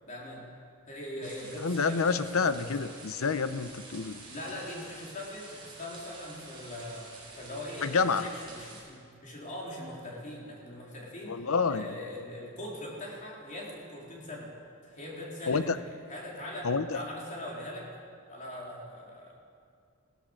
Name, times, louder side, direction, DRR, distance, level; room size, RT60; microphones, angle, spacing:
voice 1, 0.0-0.5 0.9-2.8 4.3-7.1 7.4-14.5 14.8-17.9 18.3-19.4, left 1 dB, 35° left, -3 dB, 3.8 m, -41 dB
sound 1, 1.2-8.8, right 3 dB, 25° right, 4.2 m, -49 dB
voice 2, 1.6-4.2 7.8-8.2 11.3-11.9 15.5-15.8 16.6-17.0, left 5 dB, 85° left, 12 dB, 0.7 m, -28 dB
16.5 x 13.5 x 6.5 m, 2.3 s
head